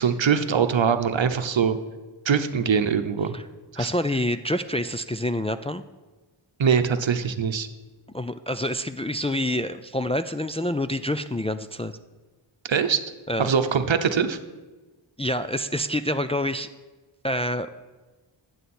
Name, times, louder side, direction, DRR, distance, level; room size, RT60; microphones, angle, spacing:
voice 1, 0.0-1.8 2.2-3.3 3.7-3.9 6.6-7.7 12.7-13.0 13.4-14.4, right 6 dB, 70° right, 9 dB, 0.8 m, -22 dB
voice 2, 3.8-5.8 8.1-11.9 13.3-13.5 15.2-16.7 17.2-17.7, left 1 dB, 15° left, 9 dB, 0.3 m, -27 dB
11.0 x 8.0 x 4.3 m, 1.2 s
cardioid pair, 45°, 48 cm